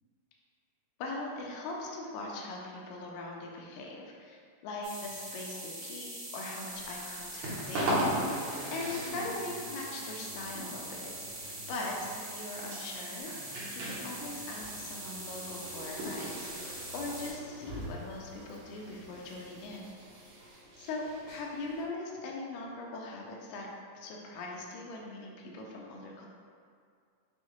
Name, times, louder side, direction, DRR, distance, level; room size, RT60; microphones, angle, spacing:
voice 1, 1.0-8.1 8.7-19.9 20.8-23.7 23.9-26.3, left 2 dB, 80° left, -1 dB, 1.8 m, -41 dB
sound 1, 4.8-17.3, right 1 dB, 55° right, 1.3 m, -43 dB
sound 2, 6.7-21.8, equal, 85° right, 2.3 m, -39 dB
5.5 x 2.1 x 2.9 m, 2.3 s
omnidirectional pair, 3.4 m